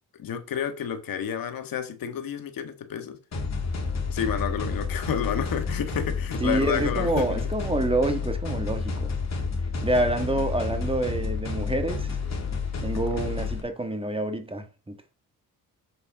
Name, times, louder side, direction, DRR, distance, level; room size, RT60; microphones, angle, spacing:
voice 1, 0.2-3.2 4.1-7.4 12.9-13.0, left 8 dB, 70° left, 1.6 m, -30 dB
sound 1, 3.3-13.6, left 4 dB, 45° left, 2.8 m, -30 dB
voice 2, 6.4-9.1 9.8-12.2 12.8-14.9, right 2 dB, 15° right, 1.5 m, -27 dB
7.1 x 6.7 x 4.9 m
cardioid pair, 95°, 36 cm